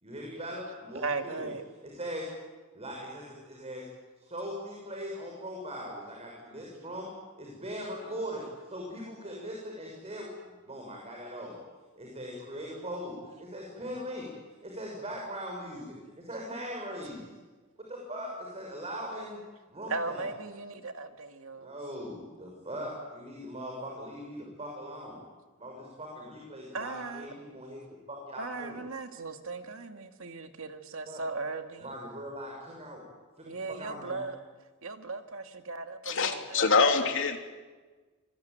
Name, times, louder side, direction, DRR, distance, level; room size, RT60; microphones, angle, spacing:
voice 1, 0.0-1.5 1.9-2.3 2.7-3.8 4.2-11.6 12.0-14.3 14.6-17.3 17.9-19.4 19.7-20.2 21.6-25.2 25.6-27.8 28.1-28.8 31.0-31.2 31.8-33.0 33.4-34.3, equal, 30° right, -1 dB, 6.3 m, -40 dB
voice 2, 0.9-1.6 19.9-21.7 26.7-27.3 28.3-31.9 33.5-34.4 34.8-36.7, right 3 dB, 70° right, 6 dB, 2.2 m, -37 dB
voice 3, 36.0-37.4, left 4 dB, 65° left, 5 dB, 3.0 m, -25 dB
26.5 x 21.5 x 9.3 m, 1.3 s
head